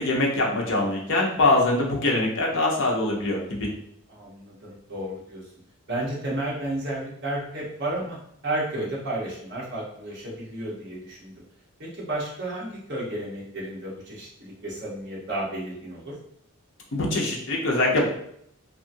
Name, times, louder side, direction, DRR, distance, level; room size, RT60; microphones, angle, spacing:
voice 1, 0.0-3.7 16.9-18.1, left 2 dB, 60° left, -2 dB, 0.7 m, -23 dB
voice 2, 4.1-5.5 5.9-8.2 8.4-11.3 11.8-16.1, right 1 dB, 50° right, -5 dB, 1.0 m, -32 dB
2.7 x 2.5 x 2.6 m, 0.69 s
head